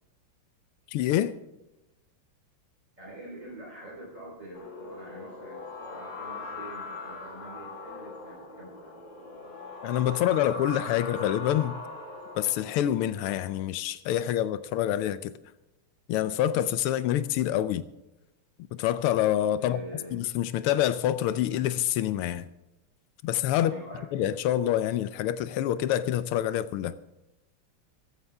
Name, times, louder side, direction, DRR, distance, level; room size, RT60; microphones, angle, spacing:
voice 1, 0.9-1.3 9.8-11.8 12.4-15.3 16.1-17.8 18.8-19.8 20.1-22.5 23.2-23.7 24.1-26.9, left 12 dB, 90° left, 1.6 m, -26 dB
voice 2, 3.0-9.0 19.6-20.2 23.5-24.0, right 1 dB, 35° right, 4.3 m, -45 dB
sound 1, 4.5-12.8, left 3 dB, 60° left, 3.8 m, -40 dB
16.5 x 15.0 x 3.5 m
omnidirectional pair, 2.4 m